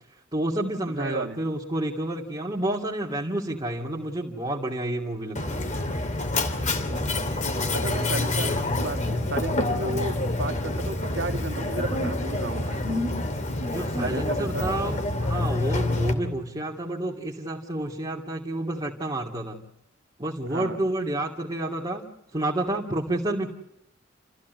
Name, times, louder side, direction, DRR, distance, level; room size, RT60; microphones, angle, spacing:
voice 1, 0.3-5.7 13.7-19.6 20.2-23.5, right 1 dB, 25° right, -3 dB, 2.4 m, -30 dB
voice 2, 1.0-1.4 6.8-7.4 7.7-12.8 14.0-14.7 20.4-20.8, right 2 dB, 70° right, 7 dB, 1.9 m, -34 dB
Mechanisms, 5.4-16.1, left 2 dB, 40° left, 2.7 m, -27 dB
29.5 x 15.0 x 9.4 m, 0.82 s
head